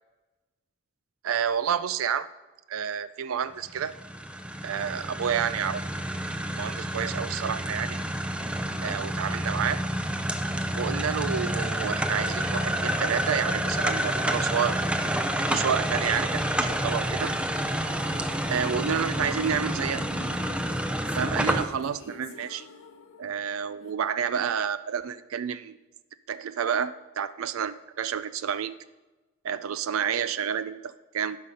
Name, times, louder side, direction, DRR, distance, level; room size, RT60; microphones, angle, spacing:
voice 1, 1.2-2.3 2.7-3.9 4.6-5.8 6.6-8.0 8.8-9.8 10.7-14.8 15.5-17.3 18.5-20.0 21.1-22.7 23.2-25.8 26.3-28.7 29.4-31.4, right 8 dB, 80° right, 14 dB, 0.4 m, -29 dB
sound 1, 3.7-21.7, right 1 dB, 5° right, 0.5 m, -29 dB
sound 2, 16.7-23.9, left 4 dB, 75° left, 0.7 m, -49 dB
11.5 x 5.8 x 5.1 m, 1.2 s
head